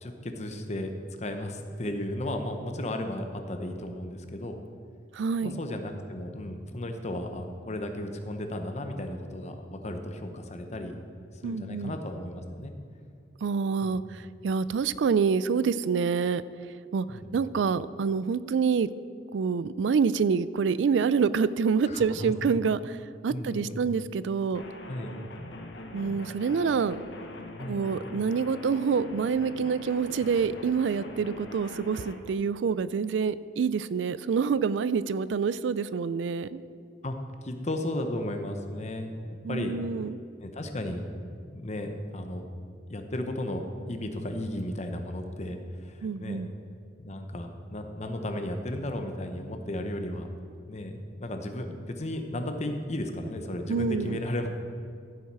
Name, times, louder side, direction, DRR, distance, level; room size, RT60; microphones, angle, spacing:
voice 1, 0.0-0.9 1.2-4.6 5.4-11.0 11.4-12.7 13.8-14.0 17.1-17.3 21.9-22.6 23.3-23.8 24.9-25.1 27.6-27.8 37.0-37.2 37.4-39.1 39.5-39.8 40.4-41.1 41.5-42.5 42.9-46.4 47.0-50.3 50.7-54.5, left 1 dB, 40° left, 5 dB, 1.0 m, -34 dB
voice 2, 5.1-5.6 11.4-11.9 13.4-16.4 16.9-18.9 19.3-24.6 25.9-27.0 27.7-36.6 39.4-40.2 46.0-46.5 53.7-54.2, right 5 dB, 85° right, 17 dB, 0.4 m, -27 dB
sound 1, 24.5-32.2, left 1 dB, 85° left, 1.1 m, -43 dB
14.5 x 7.3 x 4.8 m, 2.3 s
head